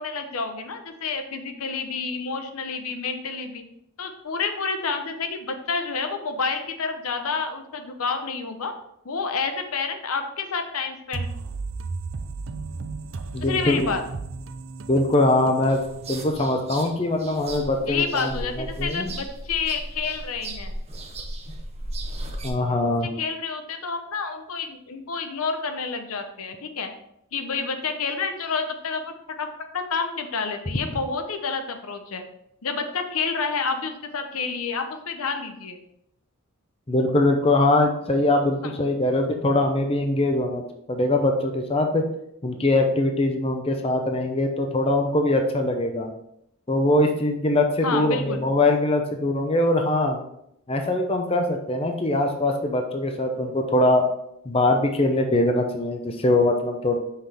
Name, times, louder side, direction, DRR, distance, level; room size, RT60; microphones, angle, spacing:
voice 1, 0.0-3.6 4.0-8.7 9.0-11.3 13.4-14.0 17.9-20.7 23.2-26.9 27.3-29.5 29.7-32.2 32.6-35.8 38.6-38.7 47.8-48.4, left 5 dB, 85° left, 7 dB, 0.8 m, -29 dB
sound 1, 11.1-16.8, right 4 dB, 60° right, 0.5 m, -35 dB
voice 2, 13.3-13.9 14.9-15.8 16.1-19.1 22.4-23.1 36.9-40.6 40.9-42.0 42.4-46.1 46.7-50.2 50.7-54.0 54.5-57.0, left 2 dB, 25° left, 4 dB, 0.6 m, -22 dB
sound 2, 15.7-22.5, right 1 dB, 30° right, 0.8 m, -36 dB
5.8 x 5.6 x 3.4 m, 0.76 s
head